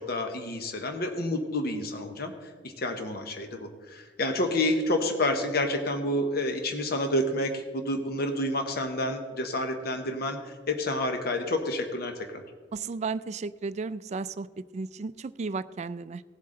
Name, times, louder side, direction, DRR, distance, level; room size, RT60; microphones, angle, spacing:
voice 1, 0.0-12.4, left 1 dB, 55° left, 5 dB, 1.0 m, -29 dB
voice 2, 12.7-16.2, right 4 dB, 35° right, 14 dB, 0.3 m, -34 dB
17.5 x 7.6 x 3.8 m, 1.5 s
head